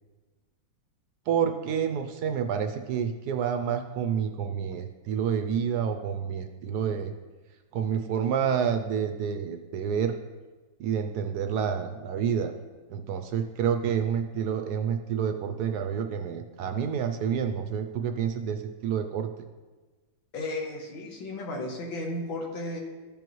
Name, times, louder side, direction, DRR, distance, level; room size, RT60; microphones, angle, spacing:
voice 1, 1.3-7.1 7.7-10.2 10.8-12.5 12.9-19.5, right 7 dB, 70° right, 7 dB, 0.9 m, -29 dB
voice 2, 20.3-22.8, left 2 dB, 85° left, -1 dB, 2.0 m, -34 dB
14.0 x 5.3 x 3.0 m, 1.3 s
omnidirectional pair, 2.1 m